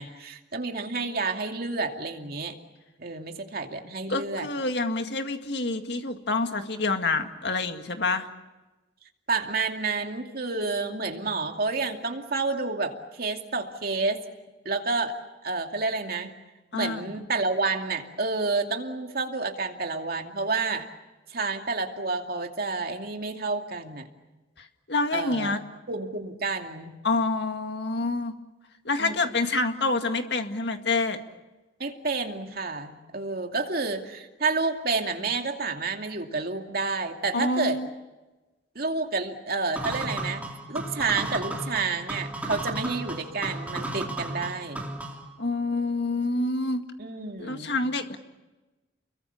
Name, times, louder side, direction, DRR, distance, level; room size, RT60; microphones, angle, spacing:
voice 1, 0.0-2.5 3.0-4.5 9.3-14.2 14.6-15.2 15.4-16.3 16.7-20.8 21.3-24.1 25.1-25.6 25.9-26.9 29.0-29.2 31.8-37.8 38.7-44.9 47.0-47.8, right 3 dB, 55° right, 4 dB, 2.5 m, -29 dB
voice 2, 4.1-8.3 16.7-17.0 24.6-25.6 27.0-28.4 28.9-31.2 37.3-37.9 45.4-46.8 47.4-48.2, left 3 dB, 60° left, 6 dB, 2.1 m, -27 dB
sound 1, 39.8-45.3, right 2 dB, 10° right, 3.2 m, -34 dB
30.0 x 22.5 x 7.1 m, 1.1 s
head